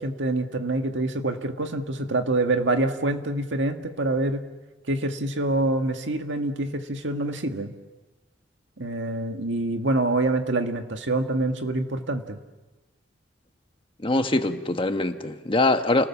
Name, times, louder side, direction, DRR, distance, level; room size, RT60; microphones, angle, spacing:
voice 1, 0.0-4.4 4.9-7.7 8.8-12.4, right 2 dB, 80° right, 5 dB, 1.9 m, -26 dB
voice 2, 14.0-16.1, left 2 dB, 30° left, 7 dB, 1.4 m, -23 dB
30.0 x 19.5 x 7.4 m, 1.1 s
head